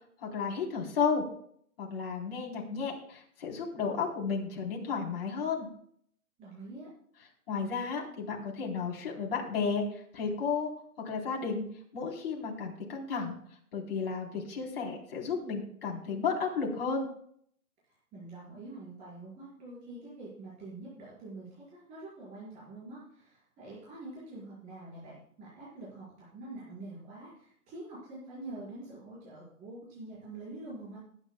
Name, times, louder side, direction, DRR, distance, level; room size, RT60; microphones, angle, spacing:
voice 1, 0.2-1.2 1.8-5.7 7.5-10.7 11.0-11.7 11.9-13.4 13.7-17.1, left 5 dB, 40° left, -1 dB, 3.8 m, -33 dB
voice 2, 6.4-6.9 18.1-31.0, right 2 dB, 15° right, -8 dB, 4.9 m, -46 dB
21.0 x 10.0 x 2.3 m, 0.64 s
hypercardioid pair, 155°, 45 cm